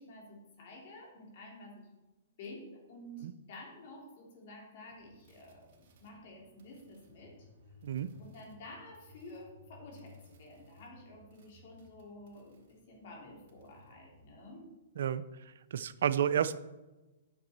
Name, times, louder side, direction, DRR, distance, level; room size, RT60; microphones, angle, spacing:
voice 1, 0.0-1.9 2.4-7.3 8.2-14.7, left 1 dB, 55° left, -1 dB, 3.1 m, -51 dB
sound 1, 4.9-14.3, left 1 dB, 50° right, 2.0 m, -60 dB
voice 2, 15.7-16.6, right 9 dB, 70° right, 15 dB, 0.5 m, -30 dB
9.3 x 6.8 x 4.3 m, 1.1 s
hypercardioid pair, 130°, 0 cm